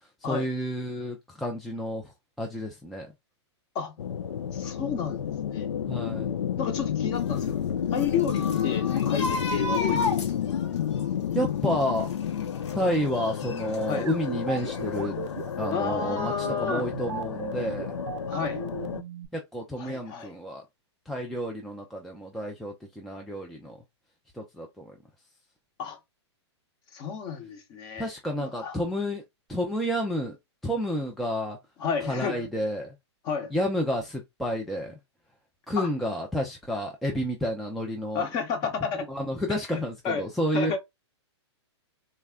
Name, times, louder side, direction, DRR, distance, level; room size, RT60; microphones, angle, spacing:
voice 1, 0.2-2.1 2.4-3.1 5.9-6.4 11.3-12.1 12.7-15.2 15.6-18.0 19.3-20.6 21.1-23.8 24.3-25.0 28.0-29.2 29.5-30.4 30.6-31.6 32.0-32.9 33.5-35.0 35.7-38.3 38.9-40.8, equal, ahead, 0.3 m, -30 dB
sound 1, 4.0-19.0, left 9 dB, 90° left, 0.4 m, -30 dB
voice 2, 4.5-5.7 6.6-7.5 7.9-10.1 13.9-14.1 15.7-16.9 18.3-18.6 19.8-20.3 25.8-26.0 26.9-28.1 28.4-28.8 31.8-32.4 33.2-33.5 35.8-35.9 38.1-39.0 39.7-39.8 40.0-40.2 40.5-40.8, left 6 dB, 30° left, 0.8 m, -31 dB
sound 2, 7.2-14.0 14.5-15.3 15.6-15.7, left 2 dB, 75° left, 1.0 m, -35 dB
sound 3, 14.1-19.3, right 7 dB, 90° right, 0.5 m, -37 dB
3.4 x 2.1 x 3.5 m
hypercardioid pair, 140°, 15 cm